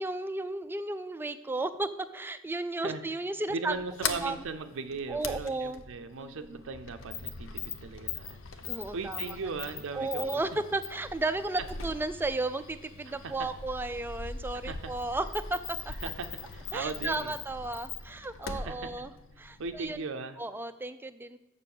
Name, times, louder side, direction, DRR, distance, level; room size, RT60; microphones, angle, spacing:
voice 1, 0.0-3.7 4.0-4.4 5.1-5.8 6.2-6.6 8.7-9.2 9.9-15.6 16.7-19.1 19.4-20.1 20.4-21.4, right 2 dB, 10° right, 10 dB, 0.4 m, -34 dB
voice 2, 3.5-10.4 13.1-13.5 14.5-14.9 16.0-17.3 18.5-19.1 19.6-20.4, right 4 dB, 65° right, 7 dB, 0.5 m, -38 dB
Sliding door, 3.7-20.1, left 5 dB, 65° left, 0.7 m, -41 dB
6.8 x 6.8 x 7.1 m, 1.0 s
head